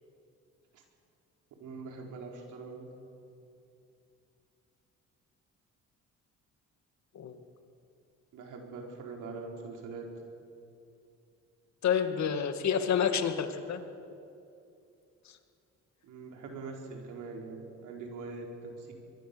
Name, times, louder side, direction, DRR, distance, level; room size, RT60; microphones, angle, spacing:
voice 1, 1.6-2.9 8.3-10.1 16.0-18.9, right 4 dB, 80° right, 1 dB, 4.5 m, -43 dB
voice 2, 11.8-13.8 15.3-15.4, left 7 dB, 65° left, 7 dB, 2.1 m, -29 dB
25.0 x 22.0 x 7.0 m, 2.6 s
cardioid pair, 90°, 30 cm